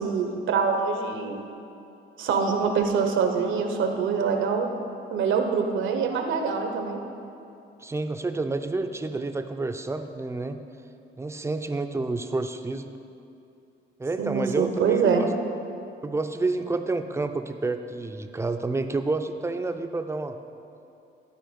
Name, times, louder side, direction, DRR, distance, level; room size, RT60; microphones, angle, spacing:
voice 1, 0.0-1.4 2.2-4.7 5.1-7.0 14.2-15.2, right 5 dB, 75° right, 5 dB, 1.0 m, -25 dB
voice 2, 7.8-10.6 11.2-12.9 14.0-15.3 16.0-20.4, right 3 dB, 15° right, 7 dB, 0.5 m, -29 dB
12.0 x 4.4 x 5.3 m, 2.7 s
cardioid pair, 90°, 20 cm